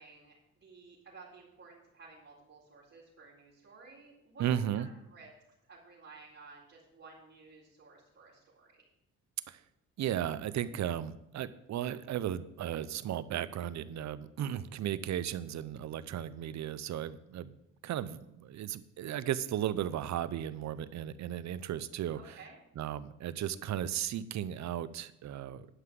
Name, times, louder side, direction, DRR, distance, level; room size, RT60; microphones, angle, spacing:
voice 1, 0.0-5.3 5.7-8.8 22.1-22.6, right 4 dB, 45° right, -8 dB, 4.0 m, -54 dB
voice 2, 4.4-4.9 9.5-9.6 10.0-17.5 17.8-22.4 22.8-25.7, right 10 dB, 65° right, 15 dB, 0.7 m, -35 dB
11.5 x 5.7 x 7.6 m, 0.82 s
cardioid pair, 90°, 30 cm